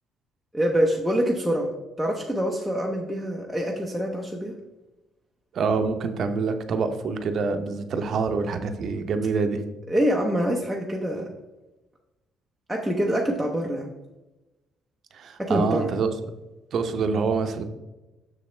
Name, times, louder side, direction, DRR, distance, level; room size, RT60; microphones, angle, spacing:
voice 1, 0.5-1.7 2.0-4.5 9.9-11.3 12.7-13.9 15.4-15.9, equal, ahead, -2 dB, 0.6 m, -25 dB
voice 2, 5.5-9.6 15.1-16.1 16.7-17.6, right 4 dB, 45° right, 7 dB, 0.7 m, -26 dB
7.0 x 6.7 x 3.2 m, 1.0 s
cardioid pair, 170°, 0 cm